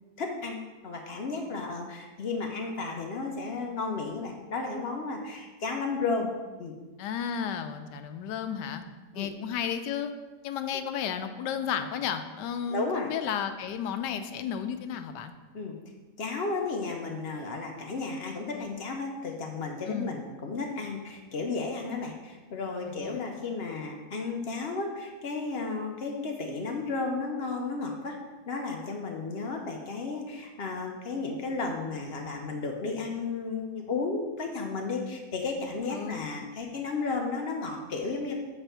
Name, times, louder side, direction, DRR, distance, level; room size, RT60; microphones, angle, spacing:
voice 1, 0.2-6.3 6.6-6.8 9.1-9.3 12.7-13.1 15.5-15.8 16.2-28.2 28.5-38.3, left 3 dB, 55° left, 2 dB, 0.7 m, -33 dB
voice 2, 7.0-8.8 9.1-10.1 10.4-15.3 19.9-20.2 22.9-23.2 35.9-36.3, left 8 dB, 90° left, 9 dB, 1.2 m, -33 dB
7.1 x 3.3 x 5.6 m, 1.2 s
omnidirectional pair, 1.8 m